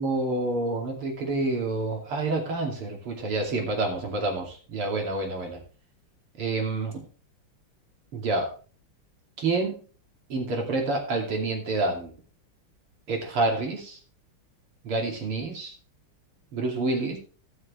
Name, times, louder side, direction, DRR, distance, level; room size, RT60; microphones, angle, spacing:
voice 1, 0.0-5.6 6.4-7.0 8.1-8.5 9.4-9.8 10.3-12.1 13.1-14.0 14.8-15.7 16.5-17.2, right 2 dB, 80° right, 1 dB, 3.6 m, -28 dB
17.5 x 6.6 x 3.2 m, 0.39 s
omnidirectional pair, 2.4 m